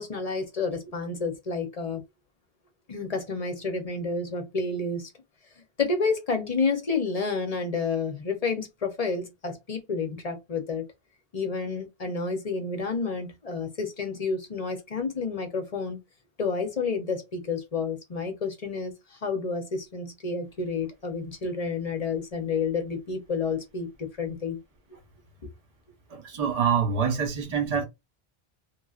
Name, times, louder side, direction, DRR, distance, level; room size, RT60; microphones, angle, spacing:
voice 1, 0.0-2.0 2.9-5.1 5.8-10.9 11.3-16.0 16.4-24.6, left 4 dB, 40° left, 0.7 m, -30 dB
voice 2, 26.1-27.8, right 6 dB, 40° right, 0.9 m, -26 dB
3.0 x 2.6 x 2.3 m
omnidirectional pair, 1.1 m